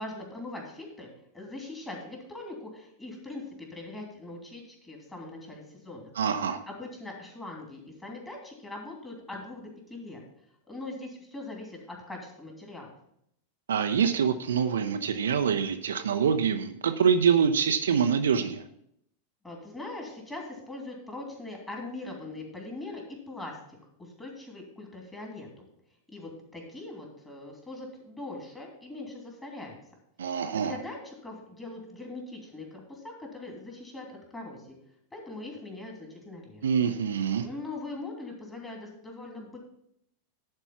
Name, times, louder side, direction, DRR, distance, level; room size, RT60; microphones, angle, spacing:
voice 1, 0.0-6.1 6.6-10.2 10.7-12.9 19.4-25.7 26.1-29.8 30.2-34.7 35.1-36.7 37.4-39.6, left 2 dB, 10° left, 0 dB, 2.7 m, -41 dB
voice 2, 6.2-6.6 13.7-18.6 30.2-30.8 36.6-37.5, right 7 dB, 65° right, 7 dB, 0.6 m, -25 dB
11.0 x 4.4 x 5.8 m, 0.73 s
figure-of-eight pair, 90°, 0 cm